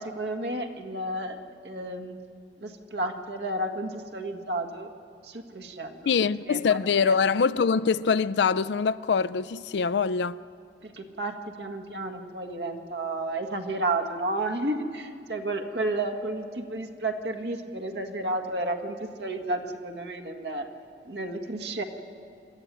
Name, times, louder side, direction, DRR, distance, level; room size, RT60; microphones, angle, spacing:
voice 1, 0.0-1.4 1.6-2.2 2.6-4.9 5.2-6.1 6.5-7.1 10.8-20.7 21.0-21.8, right 2 dB, 75° right, 1.6 m, -32 dB
voice 2, 6.1-10.4, left 5 dB, 80° left, 0.4 m, -24 dB
27.0 x 12.0 x 9.3 m
head